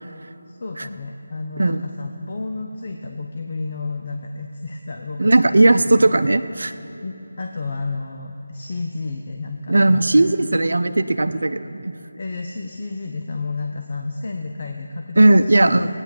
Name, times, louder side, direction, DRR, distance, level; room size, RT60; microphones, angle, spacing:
voice 1, 0.5-6.1 7.0-10.8 12.2-15.9, left 3 dB, 50° left, 3 dB, 0.8 m, -31 dB
voice 2, 5.2-6.7 9.7-11.9 15.2-15.9, right 2 dB, 70° right, 10 dB, 0.7 m, -17 dB
16.0 x 9.8 x 7.2 m, 2.7 s
figure-of-eight pair, 165°, 0 cm